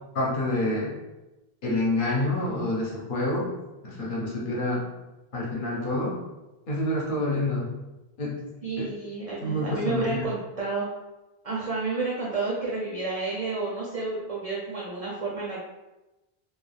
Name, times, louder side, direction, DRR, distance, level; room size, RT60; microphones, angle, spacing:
voice 1, 0.1-0.9 1.6-3.5 3.8-4.8 5.3-6.2 6.7-7.7 8.2-8.4 8.8-8.9 9.4-10.2, left 1 dB, 55° left, -4 dB, 0.9 m, -27 dB
voice 2, 8.6-10.9 11.4-15.7, right 3 dB, 50° right, -4 dB, 0.5 m, -30 dB
2.3 x 2.3 x 3.2 m, 1.0 s
omnidirectional pair, 1.0 m